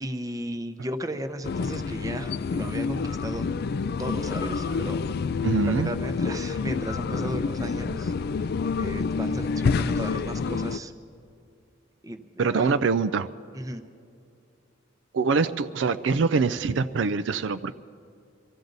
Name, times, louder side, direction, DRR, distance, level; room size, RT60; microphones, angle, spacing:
voice 1, 0.0-3.5 4.0-5.4 5.7-8.1 8.8-10.9 12.0-12.7 13.5-13.8, right 1 dB, 20° right, 8 dB, 0.7 m, -35 dB
sound 1, 1.4-10.8, left 5 dB, 55° left, 0.3 m, -28 dB
voice 2, 5.4-5.9 12.4-13.3 15.1-17.8, right 4 dB, 65° right, 12 dB, 0.4 m, -24 dB
24.5 x 14.5 x 4.0 m, 2.5 s
head